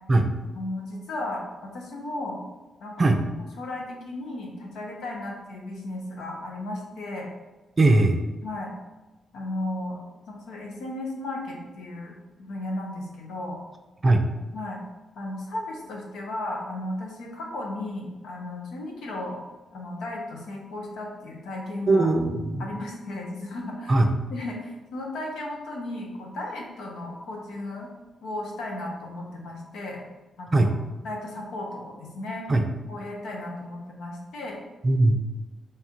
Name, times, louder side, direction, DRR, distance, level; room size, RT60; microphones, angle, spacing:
voice 1, 0.5-2.4 2.8-2.9 3.6-7.3 8.4-8.7 9.3-10.0 10.3-12.1 12.4-13.6 14.5-14.8 15.2-19.4 19.7-22.1 22.6-24.0 24.3-27.9 28.2-30.0 30.4-30.7 31.0-32.5 32.9-34.6, left 1 dB, 85° left, -1 dB, 0.8 m, -35 dB
voice 2, 7.8-8.2 14.0-14.2 21.9-22.6 23.9-24.1 30.5-30.7 32.5-32.7 34.8-35.2, right 2 dB, 30° right, 6 dB, 0.4 m, -20 dB
3.2 x 2.4 x 4.4 m, 1.1 s
cardioid pair, 95°, 0 cm